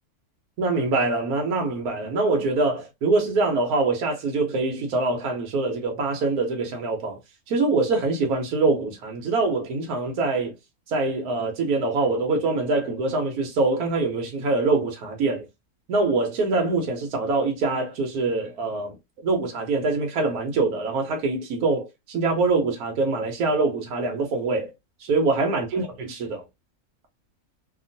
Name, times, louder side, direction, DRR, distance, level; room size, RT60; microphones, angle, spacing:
voice 1, 0.6-7.2 7.5-10.5 10.9-15.5 15.9-18.9 19.2-24.7 25.0-26.4, right 3 dB, 80° right, 1.3 m, -24 dB
2.9 x 2.5 x 2.6 m
omnidirectional pair, 1.6 m